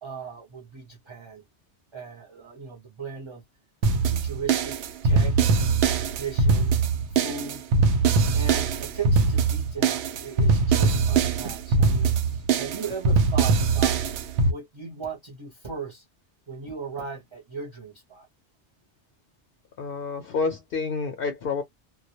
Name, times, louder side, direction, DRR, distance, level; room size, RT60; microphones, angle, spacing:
voice 1, 0.0-1.4 1.9-3.4 4.0-4.8 5.0-5.5 6.0-6.8 7.1-7.6 8.3-14.0 14.5-16.0 16.5-18.3, right 5 dB, 30° right, 0.6 m, -37 dB
sound 1, 3.8-14.5, right 4 dB, 85° right, 0.9 m, -22 dB
voice 2, 19.8-21.6, left 4 dB, 65° left, 0.7 m, -28 dB
2.2 x 2.1 x 2.7 m
omnidirectional pair, 1.1 m